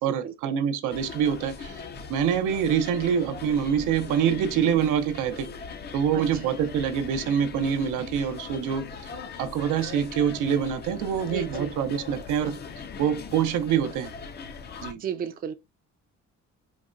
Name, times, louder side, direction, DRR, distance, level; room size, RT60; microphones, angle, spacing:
voice 1, 0.0-1.8 2.1-5.5 5.9-8.9 9.4-12.6 13.0-14.1 14.8-15.0, right 8 dB, 85° right, 0.5 m, -25 dB
sound 1, 0.9-14.9, left 5 dB, 35° left, 0.4 m, -40 dB
voice 2, 11.3-11.7 15.0-15.5, right 8 dB, 30° right, 0.4 m, -33 dB
4.0 x 2.1 x 2.4 m
cardioid pair, 90°, 30 cm